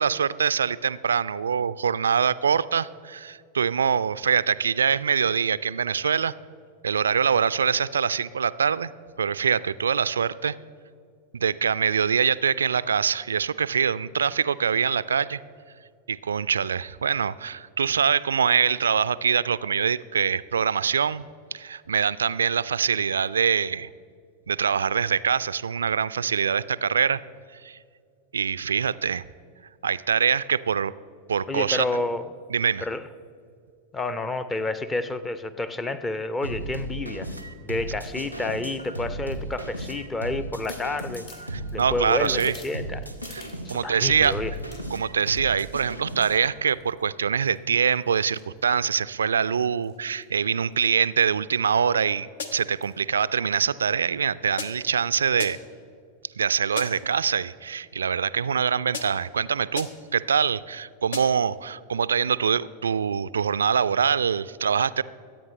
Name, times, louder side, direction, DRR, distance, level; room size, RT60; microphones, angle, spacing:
voice 1, 0.0-6.3 6.8-8.9 9.2-10.5 11.3-15.4 16.1-21.2 21.5-23.9 24.5-27.2 27.6-27.8 28.3-29.2 29.8-30.9 31.3-31.9 32.5-32.8 41.5-42.5 43.3-43.4 43.7-44.4 44.9-55.6 56.4-65.0, right 7 dB, 70° right, 17 dB, 0.3 m, -24 dB
voice 2, 31.5-32.3 32.8-33.1 33.9-37.3 37.6-41.3 41.7-43.2 43.6-44.5, left 2 dB, 15° left, 13 dB, 0.7 m, -29 dB
sound 1, 36.4-46.5, right 1 dB, 90° left, 0.9 m, -35 dB
sound 2, 37.8-38.1 38.8-39.9 40.3-40.4 40.6-43.8 44.2-45.6 46.1-46.4 46.7-47.0 47.5-49.2 49.7-50.0 50.2-50.3 50.5-50.7 51.2-51.4 51.7-51.8 52.8-53.1 53.6-53.7, left 3 dB, 45° left, 2.4 m, -51 dB
sound 3, 52.4-52.8 54.6-55.0 55.4-55.8 56.8-57.2 58.9-59.4 59.8-60.2 61.1-61.5, left 5 dB, 65° left, 1.0 m, -37 dB
24.0 x 8.8 x 3.2 m, 2.3 s
figure-of-eight pair, 90°, 0 cm